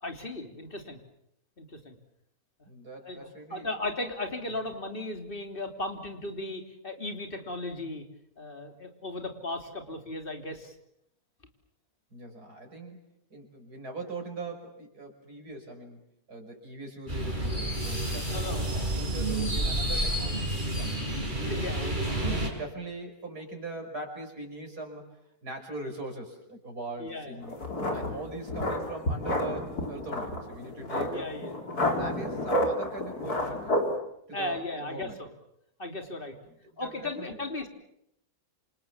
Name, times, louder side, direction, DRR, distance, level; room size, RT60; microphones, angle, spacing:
voice 1, 0.0-1.0 1.6-1.9 3.0-8.0 8.4-10.7 18.3-18.7 19.2-19.3 21.3-22.0 27.0-27.4 28.1-28.2 31.1-31.6 34.3-35.3 35.8-36.3 36.8-37.7, left 2 dB, 35° left, 5 dB, 3.3 m, -36 dB
voice 2, 2.7-3.7 12.1-13.0 13.3-16.0 16.3-20.9 21.4-25.0 25.4-31.3 31.8-33.8 34.3-35.2 36.5-37.4, right 2 dB, 90° right, 3 dB, 6.2 m, -41 dB
sound 1, 17.1-22.5, right 1 dB, 30° right, 6.5 m, -29 dB
sound 2, 27.4-34.0, left 1 dB, 75° left, 4.6 m, -30 dB
27.5 x 27.5 x 7.3 m, 0.77 s
omnidirectional pair, 1.6 m